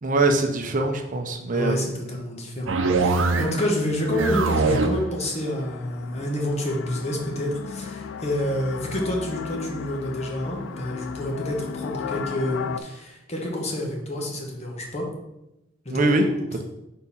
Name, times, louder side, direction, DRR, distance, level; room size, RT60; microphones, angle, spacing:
voice 1, 0.0-1.9 15.9-16.3, right 2 dB, 45° right, 4 dB, 0.6 m, -22 dB
voice 2, 1.5-15.1 15.8-16.2, left 1 dB, 35° left, 0 dB, 1.2 m, -28 dB
sound 1, 2.7-3.7 4.0-5.1, right 3 dB, 85° right, 0.6 m, -23 dB
sound 2, 4.0-12.8, left 6 dB, 70° left, 0.4 m, -36 dB
4.6 x 3.9 x 5.5 m, 0.90 s
head